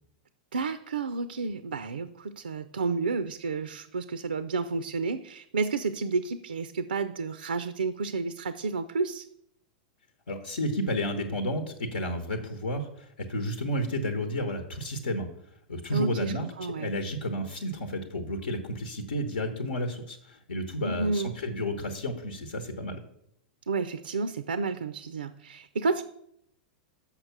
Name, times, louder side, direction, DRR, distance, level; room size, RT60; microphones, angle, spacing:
voice 1, 0.5-9.3 15.9-16.9 20.8-21.3 23.7-26.0, right 4 dB, 80° right, 12 dB, 0.4 m, -31 dB
voice 2, 10.3-15.3 15.7-16.4 16.8-23.0, equal, 75° left, 6 dB, 1.0 m, -31 dB
6.6 x 5.8 x 5.8 m, 0.73 s
figure-of-eight pair, 100°, 5 cm